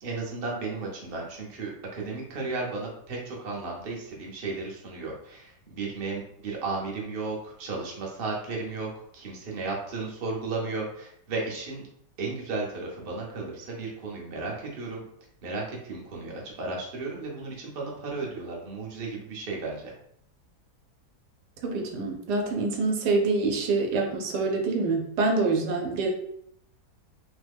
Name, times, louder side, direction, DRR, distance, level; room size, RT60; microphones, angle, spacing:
voice 1, 0.0-11.8 12.2-15.0 15.4-19.9, right 3 dB, 50° right, -2 dB, 0.8 m, -34 dB
voice 2, 21.6-26.1, right 3 dB, 80° right, 2 dB, 1.2 m, -26 dB
3.1 x 2.1 x 3.4 m, 0.69 s
omnidirectional pair, 1.8 m